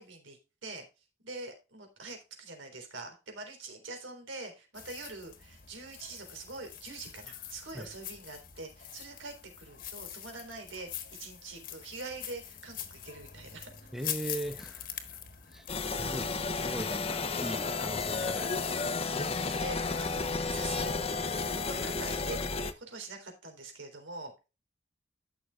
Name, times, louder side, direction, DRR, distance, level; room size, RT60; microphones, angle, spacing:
voice 1, 0.0-13.7 19.2-24.5, right 2 dB, 85° right, 3.8 m, -44 dB
sound 1, 4.7-16.6, left 10 dB, 45° left, 1.3 m, -44 dB
voice 2, 13.9-15.2 15.5-15.7 16.0-18.6, right 1 dB, ahead, 0.9 m, -39 dB
sound 2, 15.7-22.7, left 4 dB, 30° left, 0.7 m, -32 dB
14.0 x 6.4 x 2.4 m
head